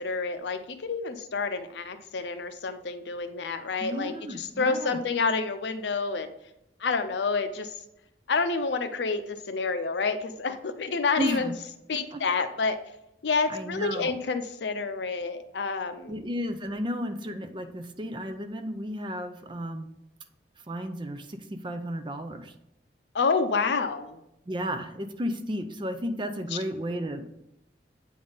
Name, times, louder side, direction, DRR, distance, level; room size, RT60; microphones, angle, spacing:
voice 1, 0.0-6.3 6.8-7.8 8.3-11.5 11.9-12.8 13.2-16.1 23.1-24.2 26.5-26.6, left 4 dB, 80° left, 9 dB, 0.6 m, -28 dB
voice 2, 3.8-5.0 11.2-11.5 12.1-12.2 13.5-14.2 16.1-19.9 20.7-22.5 24.5-27.3, equal, 30° right, 8 dB, 0.5 m, -33 dB
8.5 x 3.7 x 3.9 m, 0.84 s
head